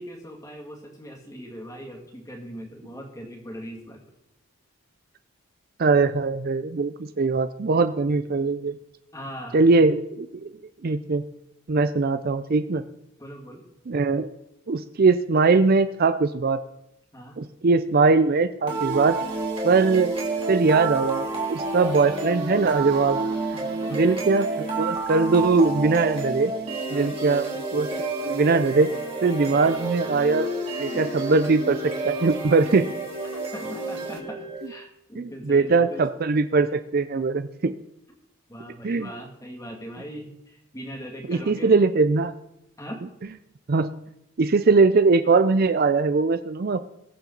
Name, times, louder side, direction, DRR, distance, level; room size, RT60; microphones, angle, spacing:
voice 1, 0.0-4.0 9.1-9.6 13.2-13.6 17.1-17.4 23.5-24.2 26.9-27.2 30.9-31.1 33.3-36.1 38.5-41.7 42.8-43.0, equal, 15° left, 0 dB, 2.3 m, -40 dB
voice 2, 5.8-8.8 9.5-10.5 10.8-11.2 11.7-12.9 13.9-14.3 14.7-16.6 17.4-19.2 19.6-20.1 20.5-23.2 23.9-26.5 26.9-27.5 27.7-27.9 28.2-28.9 29.2-30.5 30.8-32.9 35.2-37.7 38.8-39.1 41.3-42.3 43.7-43.9 44.4-46.9, right 4 dB, 45° right, 12 dB, 0.4 m, -21 dB
sound 1, 18.7-34.7, right 3 dB, 25° right, 3.0 m, -29 dB
21.0 x 7.3 x 4.0 m, 0.83 s
head